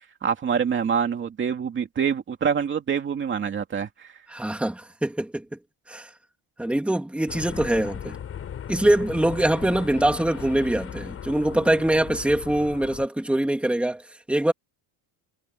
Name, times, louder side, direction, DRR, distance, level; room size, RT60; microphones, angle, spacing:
voice 1, 0.2-4.1, right 7 dB, 25° right, 2.7 m, -25 dB
voice 2, 4.3-5.4 5.9-6.1 6.6-8.2 8.7-14.5, right 1 dB, 5° right, 2.8 m, -23 dB
sound 1, 7.3-13.1, left 9 dB, 30° left, 3.8 m, -37 dB
cardioid pair, 180°, 47 cm